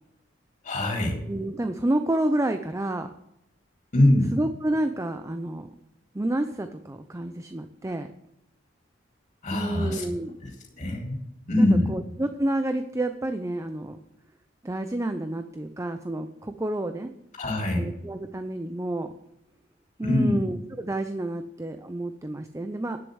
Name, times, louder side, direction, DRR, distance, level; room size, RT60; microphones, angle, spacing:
voice 1, 0.6-1.2 3.9-4.3 9.4-10.0 10.4-10.5 10.8-11.2 11.5-11.9 17.4-17.9 20.0-20.4, left 1 dB, 40° left, -1 dB, 3.8 m, -23 dB
voice 2, 1.3-3.1 4.3-5.7 6.1-8.1 9.5-10.4 11.6-14.0 14.6-17.1 17.7-19.1 20.0-23.0, right 1 dB, 15° right, 8 dB, 0.5 m, -29 dB
10.5 x 6.7 x 7.9 m, 0.81 s
head